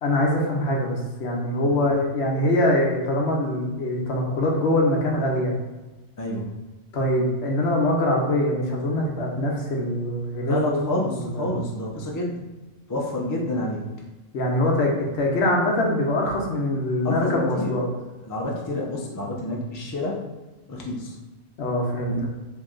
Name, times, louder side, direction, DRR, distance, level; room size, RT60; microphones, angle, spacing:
voice 1, 0.0-5.5 6.9-11.6 14.3-17.9 21.6-22.3, left 1 dB, 65° left, 0 dB, 0.9 m, -23 dB
voice 2, 6.2-6.5 10.4-12.4 12.9-13.9 17.0-17.8 18.3-20.2 20.7-21.1 22.1-22.2, left 1 dB, 30° left, -2 dB, 0.3 m, -29 dB
3.1 x 2.7 x 3.6 m, 1.2 s
omnidirectional pair, 1.2 m